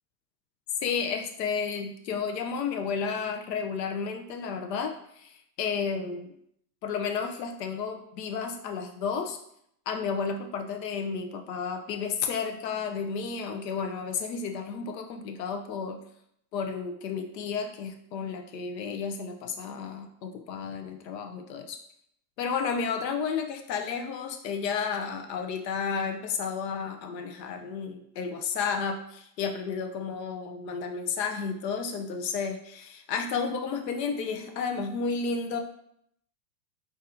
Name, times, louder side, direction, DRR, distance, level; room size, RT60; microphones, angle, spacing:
voice 1, 0.8-6.3 6.8-9.4 9.9-16.0 16.5-21.8 22.4-35.6, left 5 dB, 80° left, 5 dB, 0.7 m, -32 dB
6.5 x 2.7 x 2.6 m, 0.72 s
supercardioid pair, 180°, 49 cm